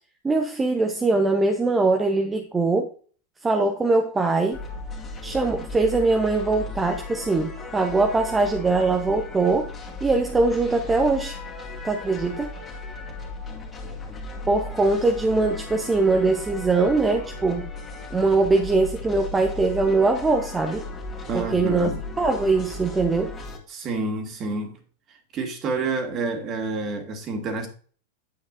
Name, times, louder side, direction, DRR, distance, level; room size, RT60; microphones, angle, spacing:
voice 1, 0.2-2.9 3.4-4.6 5.2-9.7 10.0-11.4 11.8-12.5 14.5-17.7 18.1-20.9 21.3-21.9 22.2-23.3, right 3 dB, 15° right, 0.9 m, -22 dB
sound 1, 4.5-23.6, left 2 dB, 20° left, 2.3 m, -36 dB
voice 2, 21.3-22.0 23.7-24.7 25.3-27.7, right 3 dB, 30° right, 2.2 m, -28 dB
9.9 x 8.2 x 2.6 m
figure-of-eight pair, 90°, 0 cm